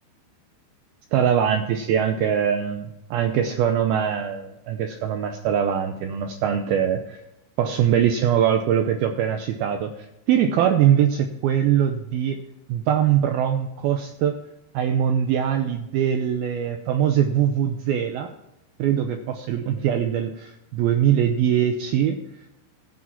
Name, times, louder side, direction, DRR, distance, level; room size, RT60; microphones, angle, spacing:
voice 1, 1.1-7.2 7.6-12.4 12.7-14.4 14.7-18.3 18.8-22.2, right 9 dB, 85° right, 6 dB, 2.1 m, -22 dB
14.0 x 7.5 x 5.9 m, 0.88 s
omnidirectional pair, 5.3 m